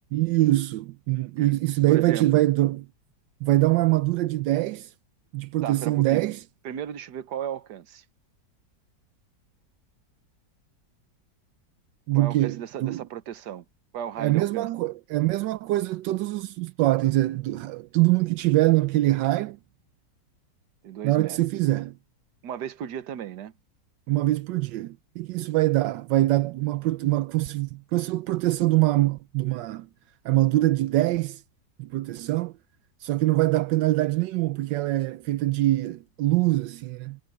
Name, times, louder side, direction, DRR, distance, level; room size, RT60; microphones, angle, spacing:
voice 1, 0.1-2.9 3.4-4.9 5.3-6.4 12.1-13.0 14.2-19.6 21.0-21.9 24.1-29.9 30.2-31.4 31.8-32.5 33.0-37.2, right 17 dB, 85° right, 1.3 m, -24 dB
voice 2, 1.9-2.4 5.6-6.3 6.6-8.0 12.1-13.6 13.9-14.7 20.8-21.4 22.4-23.5, right 9 dB, 70° right, 1.6 m, -35 dB
omnidirectional pair, 1.9 m